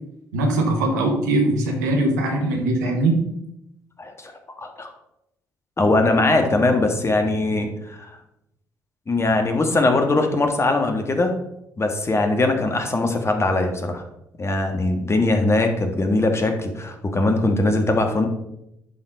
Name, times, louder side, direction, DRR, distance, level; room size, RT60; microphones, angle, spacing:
voice 1, 0.3-3.2, right 2 dB, 85° right, 2 dB, 1.3 m, -21 dB
voice 2, 4.0-4.3 4.6-4.9 5.8-8.1 9.1-11.4 11.8-14.0 14.4-18.3, left 2 dB, 30° left, 4 dB, 1.6 m, -21 dB
11.0 x 4.3 x 4.0 m, 0.83 s
hypercardioid pair, 45°, 9 cm